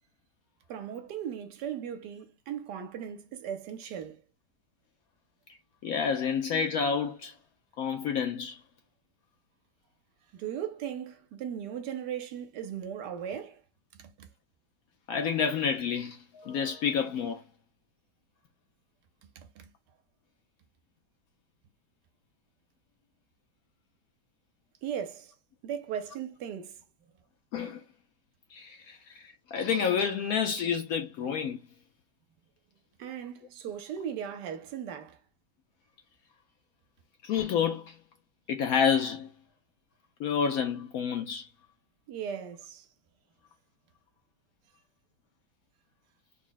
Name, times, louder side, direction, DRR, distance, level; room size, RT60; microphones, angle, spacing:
voice 1, 0.7-4.2 10.3-13.6 13.9-14.3 19.4-19.7 24.8-25.3 25.6-26.8 33.0-35.2 42.1-42.9, right 8 dB, 75° right, 1.2 m, -37 dB
voice 2, 5.8-7.3 7.8-8.6 15.1-17.4 27.5-27.8 28.5-31.6 37.2-37.9 38.5-39.3 40.2-41.5, left 7 dB, 70° left, 0.9 m, -29 dB
3.6 x 2.1 x 3.8 m
omnidirectional pair, 1.9 m